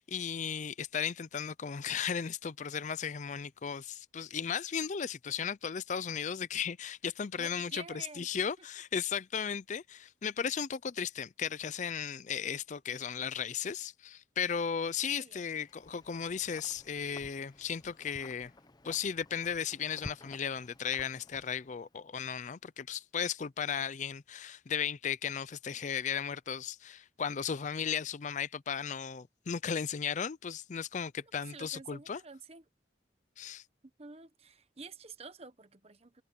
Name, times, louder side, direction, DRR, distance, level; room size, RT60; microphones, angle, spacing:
voice 1, 0.0-18.5 18.8-32.2 33.4-33.6, left 7 dB, 40° left, 0.4 m, -35 dB
voice 2, 7.4-8.3 15.2-15.4 31.5-32.6 34.0-36.2, right 4 dB, 35° right, 1.1 m, -49 dB
Wind, 15.5-22.0, left 1 dB, 25° left, 0.9 m, -53 dB
head